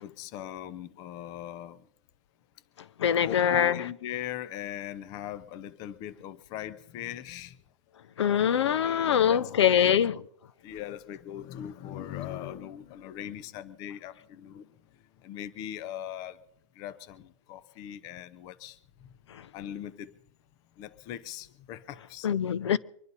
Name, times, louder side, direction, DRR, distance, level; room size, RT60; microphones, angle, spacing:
voice 1, 0.0-1.9 3.2-7.6 8.8-10.0 10.6-14.7 15.2-16.4 16.7-19.1 19.5-20.2 20.8-22.3, left 11 dB, 25° left, 0.6 m, -40 dB
voice 2, 3.0-3.9 8.2-10.2 19.3-19.4 22.2-22.8, left 9 dB, 65° left, 0.8 m, -24 dB
24.5 x 11.0 x 4.1 m
hypercardioid pair, 155°, 15 cm